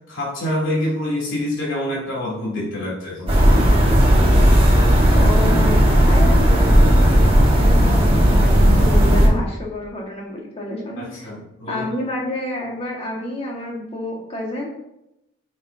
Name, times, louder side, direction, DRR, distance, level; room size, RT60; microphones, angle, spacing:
voice 1, 0.1-3.3 11.0-11.9, left 1 dB, 75° left, -5 dB, 3.0 m, -26 dB
sound 1, 3.3-9.3, equal, 30° right, 1.6 m, -14 dB
voice 2, 5.1-5.8 6.1-11.3 11.7-14.7, left 1 dB, 30° left, -2 dB, 1.6 m, -29 dB
9.9 x 6.0 x 2.7 m, 0.86 s
head